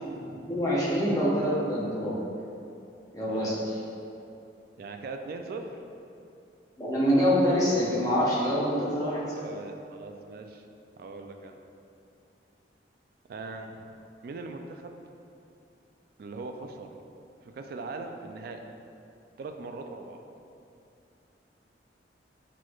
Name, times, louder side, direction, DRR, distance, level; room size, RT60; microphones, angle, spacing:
voice 1, 0.0-2.2 3.1-3.5 6.8-9.4, equal, 20° left, -8 dB, 0.7 m, -26 dB
voice 2, 3.2-3.6 4.8-5.7 9.3-10.6 11.0-11.6 13.3-13.9 14.2-15.0 16.2-16.9 17.4-18.6 19.4-20.2, right 3 dB, 55° right, 5 dB, 0.3 m, -40 dB
6.0 x 3.1 x 2.3 m, 2.7 s
head